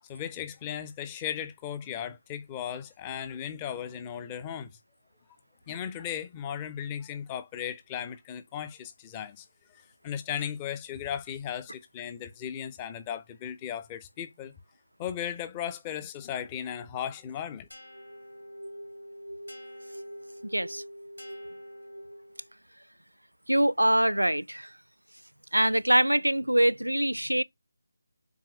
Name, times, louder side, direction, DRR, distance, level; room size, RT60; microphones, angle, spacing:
voice 1, 0.0-4.7 5.7-14.5 15.0-17.7, left 9 dB, 15° left, 0.6 m, -36 dB
sound 1, 17.7-22.5, equal, 65° left, 3.2 m, -44 dB
voice 2, 20.5-20.8 23.5-24.7 25.5-27.4, right 1 dB, 80° right, 0.5 m, -24 dB
7.1 x 4.7 x 3.2 m
figure-of-eight pair, 160°, 0 cm